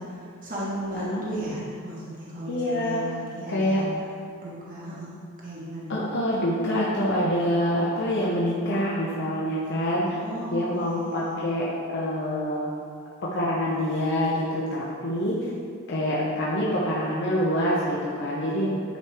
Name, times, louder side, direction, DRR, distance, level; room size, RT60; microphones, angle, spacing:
voice 1, 0.0-3.9 4.4-5.1 5.4-5.9 10.0-11.4, right 1 dB, 40° right, -8 dB, 1.4 m, -35 dB
voice 2, 2.5-3.0 3.5-3.8 5.9-10.2 10.5-11.7 11.9-12.7 13.2-15.4 15.9-19.0, equal, 50° left, -6 dB, 0.9 m, -26 dB
10.5 x 4.8 x 3.5 m, 2.3 s
head